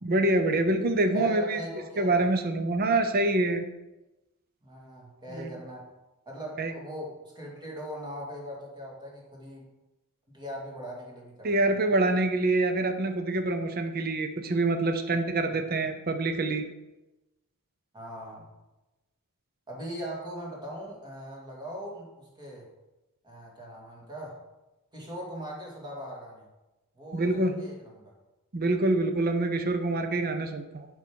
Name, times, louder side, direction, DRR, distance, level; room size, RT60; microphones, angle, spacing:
voice 1, 0.0-1.6 2.0-3.6 5.3-5.5 6.6-6.7 11.4-16.7 27.1-27.6 28.5-30.9, right 2 dB, 45° right, 7 dB, 0.7 m, -26 dB
voice 2, 1.1-2.3 4.6-5.9 6.3-9.7 10.3-11.9 17.9-18.5 19.7-22.7 23.2-24.4 24.9-26.5 26.9-28.1, equal, 20° right, -2 dB, 2.3 m, -40 dB
7.2 x 5.5 x 6.3 m, 1.0 s
head